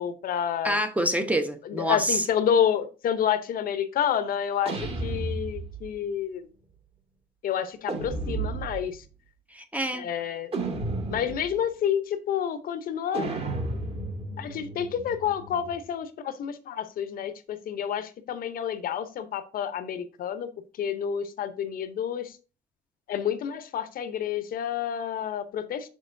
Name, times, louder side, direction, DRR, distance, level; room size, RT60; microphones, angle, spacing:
voice 1, 0.0-0.8 1.7-6.5 7.4-9.0 9.9-10.5 11.1-13.3 14.4-20.5 20.8-22.4 23.1-25.9, left 9 dB, 60° left, 0.8 m, -29 dB
voice 2, 0.6-2.2 9.5-10.1, right 1 dB, 10° right, 0.8 m, -27 dB
sound 1, 4.6-5.9 7.9-9.0 10.5-11.6 13.1-15.8, right 3 dB, 35° right, 1.7 m, -33 dB
7.1 x 6.3 x 2.6 m
cardioid pair, 110°, 17 cm